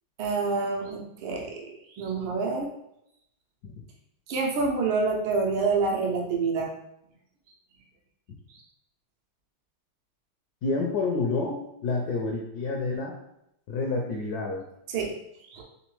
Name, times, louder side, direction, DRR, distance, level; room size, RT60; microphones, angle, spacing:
voice 1, 0.2-2.7 4.3-6.7 14.9-15.1 15.5-15.6, right 4 dB, 80° right, 0 dB, 1.6 m, -27 dB
voice 2, 10.6-13.1 13.7-14.6, left 3 dB, 75° left, 0 dB, 0.9 m, -28 dB
4.1 x 3.6 x 3.1 m, 0.79 s
omnidirectional pair, 2.3 m